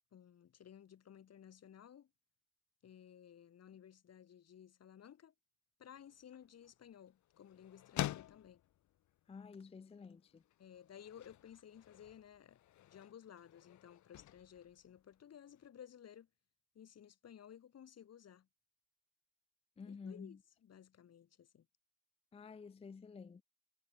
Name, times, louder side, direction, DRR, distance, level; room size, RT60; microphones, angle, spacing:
voice 1, 0.1-2.1 2.8-5.3 5.8-8.6 10.6-12.6 12.8-16.3 16.7-18.5 19.9-21.7, left 9 dB, 55° left, 2.5 m, -57 dB
sound 1, 5.9-15.7, left 13 dB, 70° left, 1.1 m, -49 dB
voice 2, 9.3-10.4 19.8-20.4 22.3-23.4, left 5 dB, 20° left, 0.5 m, -51 dB
cardioid pair, 90°, 30 cm